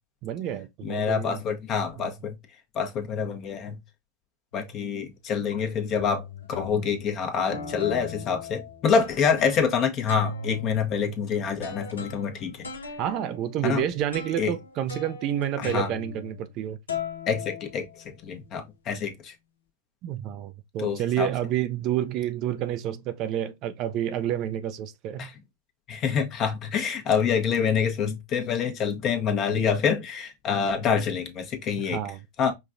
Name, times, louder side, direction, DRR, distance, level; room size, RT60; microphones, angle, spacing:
voice 1, 0.2-1.4 2.0-2.1 13.0-16.8 20.0-25.3 31.9-32.2, right 11 dB, 45° right, 0.4 m, -29 dB
voice 2, 0.8-2.3 2.7-3.8 4.5-6.2 6.5-12.6 13.6-13.8 14.4-14.5 15.6-15.9 17.3-17.8 18.2-19.3 20.8-21.3 25.2-25.3 25.9-32.0 32.4-32.5, left 6 dB, 40° left, 1.0 m, -26 dB
sound 1, 4.5-4.9 5.5-5.6 6.0-7.1 7.5-9.7 10.1-16.6 16.9-18.3, left 5 dB, 90° left, 0.7 m, -38 dB
5.1 x 2.4 x 2.5 m
hypercardioid pair, 100°, 0 cm